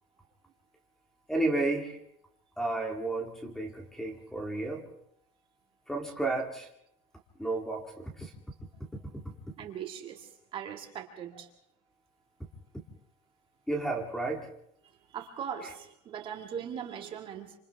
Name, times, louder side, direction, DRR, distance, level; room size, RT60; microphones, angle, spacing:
voice 1, 1.3-2.0 2.6-4.8 5.9-6.7 7.4-8.3 13.7-14.5, right 2 dB, ahead, 2 dB, 1.9 m, -32 dB
voice 2, 9.6-11.5 14.8-17.6, right 8 dB, 25° right, 3 dB, 2.1 m, -40 dB
28.0 x 26.5 x 3.5 m, 0.72 s
cardioid pair, 180°, 19 cm